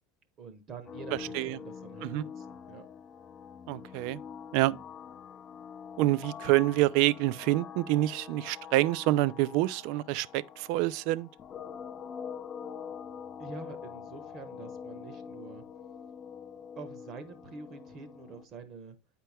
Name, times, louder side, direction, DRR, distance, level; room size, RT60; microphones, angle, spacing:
voice 1, 0.4-2.9 13.4-15.6 16.8-19.0, right 4 dB, 35° right, 1.1 m, -46 dB
sound 1, 0.9-18.4, left 7 dB, 30° left, 0.5 m, -45 dB
voice 2, 3.7-4.2 4.5-4.8 6.0-11.3, right 17 dB, 55° right, 0.3 m, -27 dB
9.2 x 4.4 x 3.4 m
supercardioid pair, 155°, 0 cm